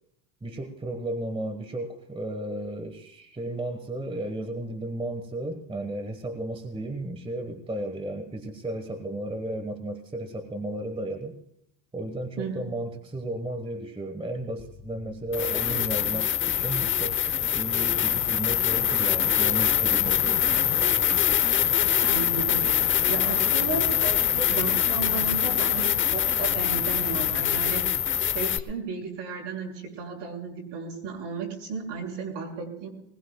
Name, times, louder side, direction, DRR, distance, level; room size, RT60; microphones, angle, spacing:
voice 1, 0.4-11.3 11.9-20.9, right 1 dB, 10° right, 8 dB, 1.4 m, -34 dB
voice 2, 12.4-12.7 22.0-27.8 28.2-32.9, right 4 dB, 55° right, 2 dB, 6.4 m, -34 dB
sound 1, 14.6-14.7 15.3-28.6, left 10 dB, 25° left, 0.8 m, -24 dB
20.5 x 20.5 x 2.3 m, 0.78 s
supercardioid pair, 100°, 49 cm